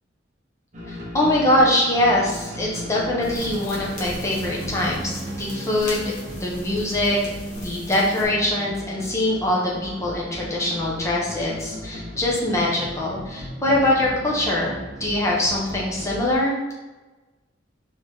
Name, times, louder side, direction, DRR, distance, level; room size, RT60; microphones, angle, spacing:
sound 1, 0.7-16.4, equal, 40° right, 0.9 m, -36 dB
voice 1, 0.9-7.2 7.6-16.6, left 1 dB, 15° left, -5 dB, 1.0 m, -23 dB
sound 2, 3.2-8.2, equal, 40° left, 1.4 m, -37 dB
4.7 x 3.1 x 3.6 m, 1.2 s
head